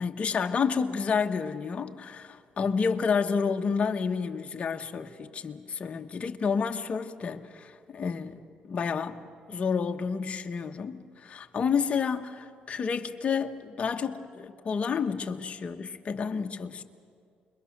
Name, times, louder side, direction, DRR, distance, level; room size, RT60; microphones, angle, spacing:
voice 1, 0.0-16.8, left 6 dB, 40° left, 1.1 m, -30 dB
27.5 x 22.0 x 6.6 m
cardioid pair, 120°, 3 cm